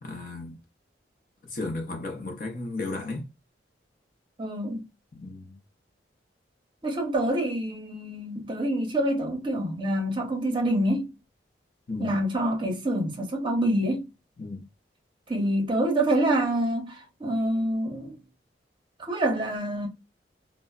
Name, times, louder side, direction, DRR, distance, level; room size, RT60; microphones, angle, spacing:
voice 1, 0.0-0.6 1.4-3.3 5.2-5.6 11.9-12.1 14.4-14.6, left 2 dB, 50° left, 0.6 m, -34 dB
voice 2, 4.4-4.9 6.8-11.1 12.0-14.1 15.3-18.2 19.0-19.9, right 1 dB, 25° right, 0.7 m, -26 dB
3.2 x 2.0 x 2.3 m
head